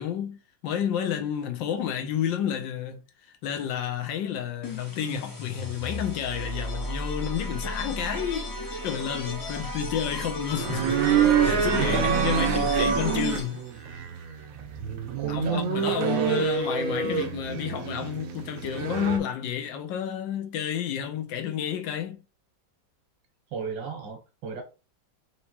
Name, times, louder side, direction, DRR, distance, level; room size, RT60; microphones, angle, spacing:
voice 1, 0.0-3.0 3.4-11.0 11.4-13.6 15.3-22.2, left 9 dB, 85° left, 1.5 m, -30 dB
sound 1, 4.6-13.8, left 1 dB, 30° left, 0.4 m, -34 dB
sound 2, 10.5-19.2, right 7 dB, 70° right, 0.8 m, -26 dB
voice 2, 11.8-12.1 12.5-12.9 15.2-15.7 16.0-16.5 23.5-24.6, right 5 dB, 90° right, 2.0 m, -33 dB
4.6 x 2.9 x 2.9 m
omnidirectional pair, 2.0 m